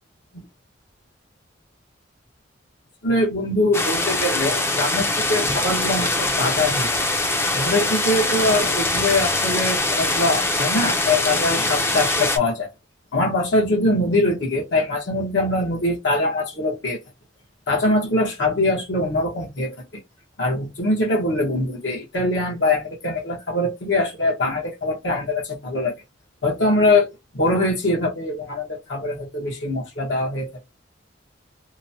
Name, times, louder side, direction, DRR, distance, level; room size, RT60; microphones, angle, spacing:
voice 1, 3.0-6.9 7.5-12.7 13.1-17.0 17.7-19.8 20.4-25.9 26.4-27.1 27.3-30.6, left 2 dB, 75° left, 1.0 m, -22 dB
sound 1, 3.7-12.4, left 2 dB, 15° left, 0.4 m, -23 dB
3.0 x 2.1 x 2.6 m
head